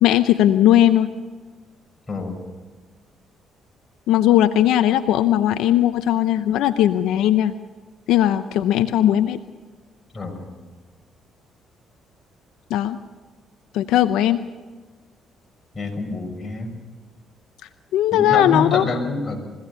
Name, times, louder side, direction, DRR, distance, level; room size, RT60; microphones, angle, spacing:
voice 1, 0.0-1.1 4.1-7.5 8.1-9.4 12.7-13.0 13.7-14.4 17.9-18.8, left 12 dB, 80° left, 11 dB, 0.7 m, -18 dB
voice 2, 2.1-2.4 10.1-10.5 15.7-16.7 18.1-19.4, left 3 dB, 25° left, 2 dB, 6.0 m, -27 dB
23.5 x 17.0 x 6.8 m, 1.4 s
supercardioid pair, 70°, 0 cm